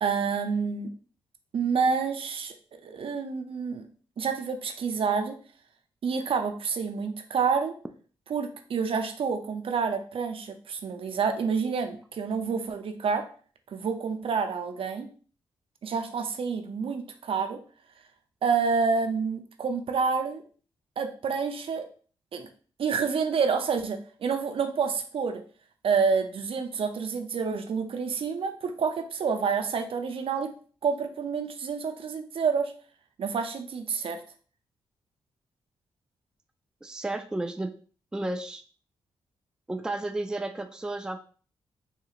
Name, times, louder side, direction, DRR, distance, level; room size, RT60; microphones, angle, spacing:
voice 1, 0.0-0.9 1.5-2.5 2.8-3.8 4.2-5.4 6.0-7.7 8.3-13.2 13.7-15.1 15.8-17.6 18.4-20.4 21.0-21.8 22.3-22.5 22.8-25.4 25.8-30.5 30.8-32.7 33.2-34.2, right 5 dB, 60° right, 6 dB, 0.5 m, -28 dB
voice 2, 36.8-37.8 38.1-38.6 39.7-41.2, right 2 dB, 5° right, 7 dB, 0.3 m, -32 dB
3.5 x 2.8 x 2.4 m, 0.41 s
cardioid pair, 65°, 10 cm